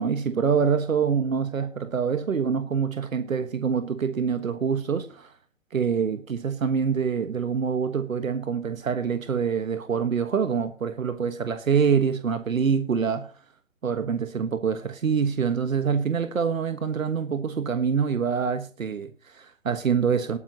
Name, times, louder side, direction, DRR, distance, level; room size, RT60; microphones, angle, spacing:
voice 1, 0.0-5.3 5.7-13.3 13.8-20.4, right 6 dB, 80° right, 1.5 m, -25 dB
19.0 x 9.6 x 2.9 m
hypercardioid pair, 140°, 39 cm